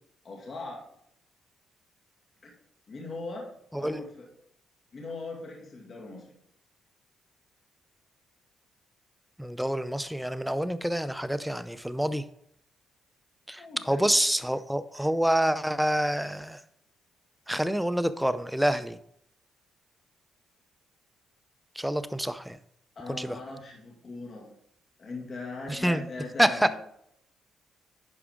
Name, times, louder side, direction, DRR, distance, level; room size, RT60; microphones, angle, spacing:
voice 1, 0.2-0.8 2.4-2.5 2.9-3.5 3.8-4.3 4.9-6.3 13.6-14.1 14.9-15.1 23.0-24.5 25.0-26.8, left 3 dB, 45° left, -2 dB, 2.1 m, -40 dB
voice 2, 9.4-12.2 13.5-16.6 17.5-19.0 21.8-22.6 23.1-23.4 25.7-26.0 26.4-26.7, equal, 5° right, 13 dB, 0.5 m, -27 dB
11.0 x 4.8 x 3.6 m, 0.71 s
cardioid pair, 90°, 0 cm